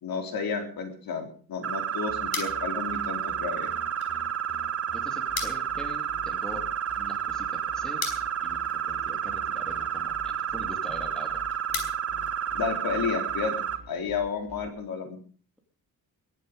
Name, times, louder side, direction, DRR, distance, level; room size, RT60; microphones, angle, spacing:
voice 1, 0.0-3.7 12.5-13.5 13.9-15.2, left 5 dB, 65° left, 4 dB, 3.8 m, -31 dB
sound 1, 1.6-13.0, left 6 dB, 85° left, 5.0 m, -43 dB
sound 2, 1.6-13.8, right 8 dB, 40° right, 1.2 m, -31 dB
sound 3, 2.1-14.7, left 3 dB, 15° left, 4.1 m, -47 dB
voice 2, 4.9-6.6 6.9-8.0 8.4-11.4, left 1 dB, ahead, 3 dB, 2.5 m, -43 dB
22.0 x 10.0 x 5.3 m, 0.43 s
wide cardioid pair, 180°, 38 cm